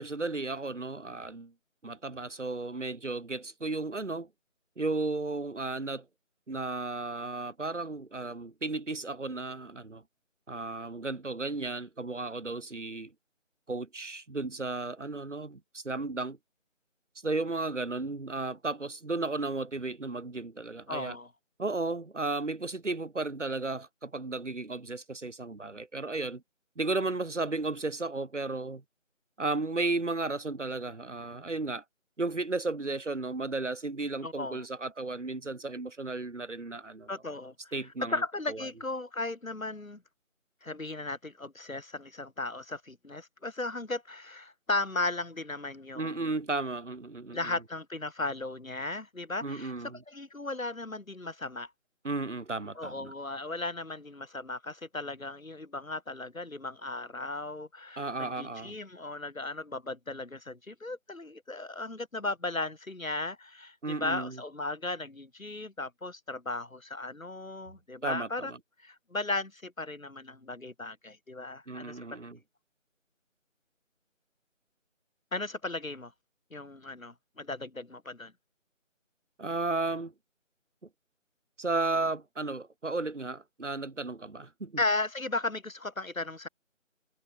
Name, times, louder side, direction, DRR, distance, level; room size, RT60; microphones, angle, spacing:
voice 1, 0.0-1.5 1.8-4.3 4.8-6.0 6.5-10.0 10.5-13.1 13.7-16.4 17.2-21.2 21.6-26.4 26.8-28.8 29.4-31.8 32.2-37.1 37.7-38.2 38.5-38.6 45.9-47.6 49.4-50.0 52.0-53.1 58.0-58.7 63.8-64.4 68.0-68.6 71.7-72.4 79.4-80.1 81.6-84.8, right 3 dB, 65° right, 3.3 m, -34 dB
voice 2, 20.9-21.3 34.2-34.7 37.1-37.8 38.1-40.0 40.6-46.3 47.3-49.7 50.1-51.7 52.8-68.5 68.8-72.0 75.3-76.1 76.5-78.3 84.8-86.5, left 2 dB, 90° left, 5.2 m, -36 dB
figure-of-eight pair, 175°, 39 cm